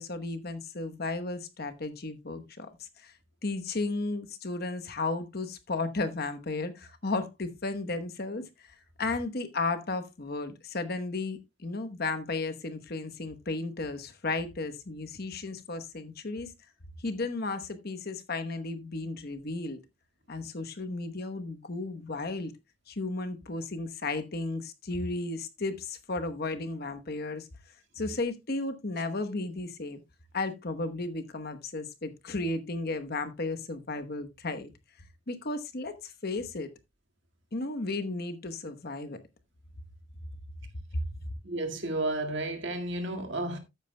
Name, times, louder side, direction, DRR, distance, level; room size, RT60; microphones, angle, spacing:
voice 1, 0.0-3.1 3.4-16.5 17.0-19.8 20.3-22.5 22.9-27.5 27.9-30.0 30.3-34.7 35.3-36.7 37.5-39.2 40.9-41.0, left 3 dB, 50° left, 1.0 m, -34 dB
voice 2, 41.4-43.6, right 2 dB, 60° right, 1.9 m, -32 dB
13.0 x 9.0 x 2.2 m
head